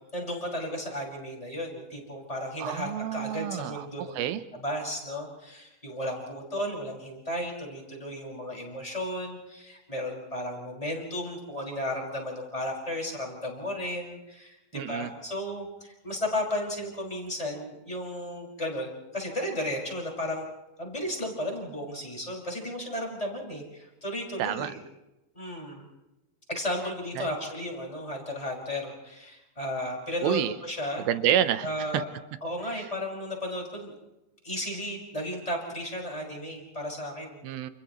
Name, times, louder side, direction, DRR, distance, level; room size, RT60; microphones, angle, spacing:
voice 1, 0.1-4.1 4.5-20.5 20.8-24.8 25.3-25.9 26.5-31.1 31.6-32.1 32.4-33.9 34.4-37.4, left 1 dB, 10° left, -1 dB, 5.6 m, -34 dB
voice 2, 2.6-4.4 14.7-15.1 24.4-24.7 27.2-27.3 30.2-30.5 31.1-31.7 31.9-32.0 37.4-37.7, right 11 dB, 80° right, 11 dB, 2.7 m, -28 dB
29.5 x 29.5 x 3.1 m, 0.96 s
omnidirectional pair, 4.3 m